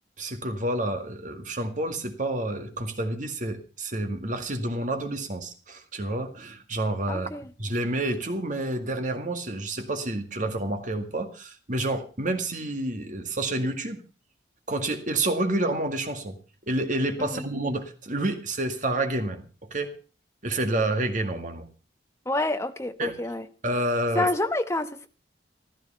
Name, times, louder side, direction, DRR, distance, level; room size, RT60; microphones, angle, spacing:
voice 1, 0.2-7.3 7.6-14.0 14.7-16.4 16.7-19.4 19.7-19.9 20.4-21.7 23.0-23.1 23.6-24.3, right 1 dB, 45° right, 6 dB, 2.0 m, -29 dB
voice 2, 7.1-7.5 17.2-17.5 22.2-23.5 24.1-25.1, left 2 dB, 15° left, 8 dB, 1.0 m, -28 dB
15.0 x 12.5 x 5.5 m, 0.36 s
head